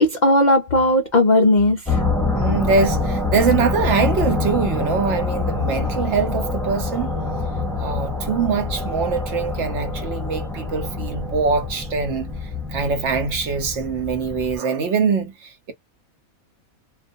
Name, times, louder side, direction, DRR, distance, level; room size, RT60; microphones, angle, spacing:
voice 1, 0.0-2.0, left 1 dB, 85° left, 0.4 m, -17 dB
sound 1, 1.9-14.6, left 3 dB, ahead, 0.7 m, -25 dB
voice 2, 2.3-7.1 7.8-12.3 12.7-15.7, right 5 dB, 65° right, 1.0 m, -23 dB
2.3 x 2.2 x 2.6 m
omnidirectional pair, 1.4 m